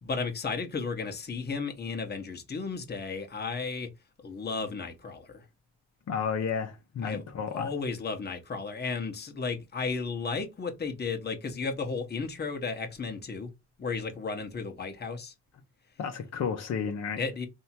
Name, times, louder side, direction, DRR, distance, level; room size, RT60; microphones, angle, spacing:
voice 1, 0.0-3.9 4.2-5.4 7.0-7.2 7.5-13.5 13.8-15.3 17.2-17.5, left 4 dB, 35° left, 1.1 m, -34 dB
voice 2, 6.1-7.7 16.0-17.2, left 6 dB, 55° left, 0.9 m, -32 dB
3.4 x 2.8 x 4.3 m
cardioid pair, 90°, 30 cm